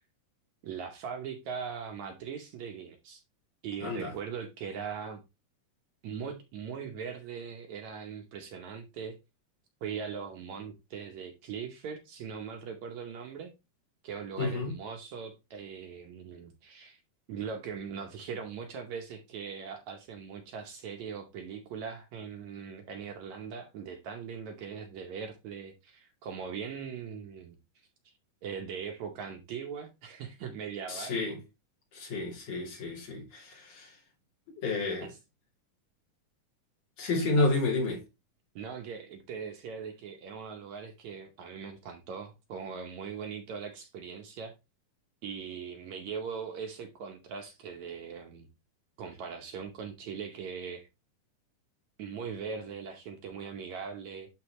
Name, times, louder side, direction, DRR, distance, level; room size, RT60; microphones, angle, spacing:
voice 1, 0.6-3.2 3.6-5.2 6.0-9.2 9.8-13.5 14.0-17.0 17.3-27.6 28.4-31.2 31.9-32.0 35.0-35.2 37.4-37.5 38.6-44.5 45.2-48.5 49.0-50.9 52.0-54.3, right 6 dB, 70° right, 2.0 m, -40 dB
voice 2, 3.8-4.1 14.4-14.7 30.9-31.4 31.9-33.9 34.5-35.1 37.0-38.0, left 3 dB, 50° left, 3.8 m, -30 dB
11.5 x 4.0 x 3.0 m
omnidirectional pair, 3.8 m